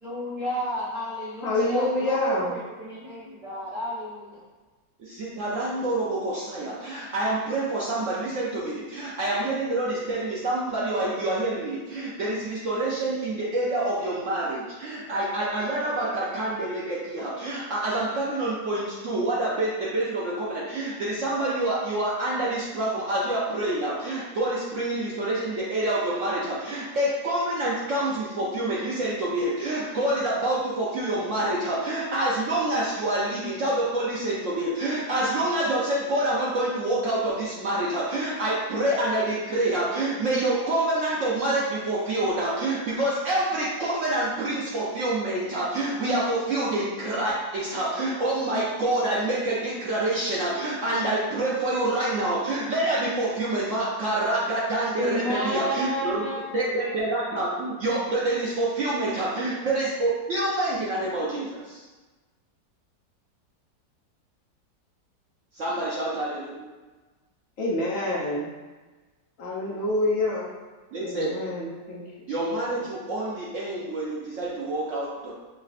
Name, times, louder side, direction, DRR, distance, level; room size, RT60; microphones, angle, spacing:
voice 1, 0.0-4.2 55.0-56.5, equal, 40° right, -10 dB, 1.0 m, -30 dB
voice 2, 1.4-2.5 67.6-68.5 69.4-70.5 71.0-72.0 72.4-72.5, left 2 dB, 65° left, -4 dB, 0.8 m, -27 dB
voice 3, 5.1-56.2 56.5-61.6 65.5-66.7 70.9-71.3 72.3-75.3, right 1 dB, 70° right, -6 dB, 0.7 m, -27 dB
5.6 x 2.2 x 2.4 m, 1.2 s
omnidirectional pair, 1.9 m